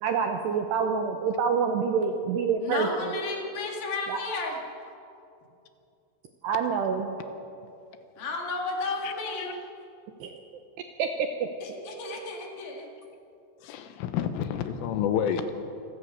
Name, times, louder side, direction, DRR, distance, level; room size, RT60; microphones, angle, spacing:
voice 1, 0.0-2.9 4.1-4.2 6.4-7.2 10.2-10.4 11.0-11.3, right 6 dB, 75° right, 5 dB, 2.5 m, -26 dB
voice 2, 2.6-4.6 8.2-9.5 11.6-12.9, left 3 dB, 55° left, 1 dB, 3.3 m, -33 dB
voice 3, 13.6-15.6, left 8 dB, 80° left, 9 dB, 3.5 m, -29 dB
26.0 x 16.0 x 6.6 m, 2.6 s
omnidirectional pair, 5.9 m